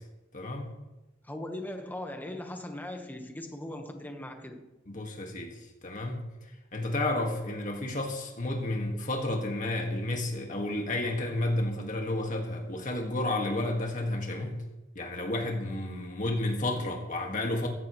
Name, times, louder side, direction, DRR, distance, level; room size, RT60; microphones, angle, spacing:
voice 1, 0.3-0.7 4.9-5.6 5.8-6.2 6.7-14.5 14.9-17.7, left 1 dB, 40° left, 1.8 m, -31 dB
voice 2, 1.2-4.7, left 1 dB, 10° left, 1.2 m, -39 dB
16.0 x 15.5 x 3.1 m
head